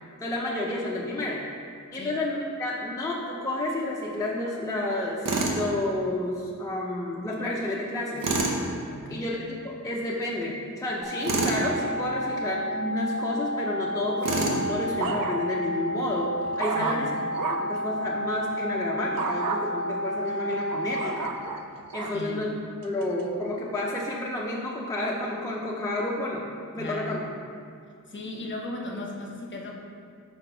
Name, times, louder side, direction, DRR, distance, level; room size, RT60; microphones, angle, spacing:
voice 1, 0.2-1.4 1.9-8.3 9.1-16.3 16.6-17.1 17.5-21.3 21.9-22.5 22.8-26.4 26.7-27.2, left 1 dB, 10° left, -4 dB, 0.5 m, -30 dB
Tools, 5.3-5.6 8.2-8.6 11.2-11.6 14.2-14.6, right 2 dB, 70° right, 0.9 m, -26 dB
voice 2, 8.9-9.3 16.7-17.2 22.1-22.5 26.8-27.3 28.1-29.7, left 1 dB, 35° left, 0 dB, 0.9 m, -37 dB
sound 1, 11.0-21.0, equal, 15° right, 0.9 m, -31 dB
sound 2, 14.3-15.7 16.1-17.8 19.2-19.6 20.3-22.2 22.8-23.2, right 5 dB, 85° right, 0.5 m, -33 dB
4.9 x 4.3 x 5.5 m, 2.2 s
wide cardioid pair, 135°, 33 cm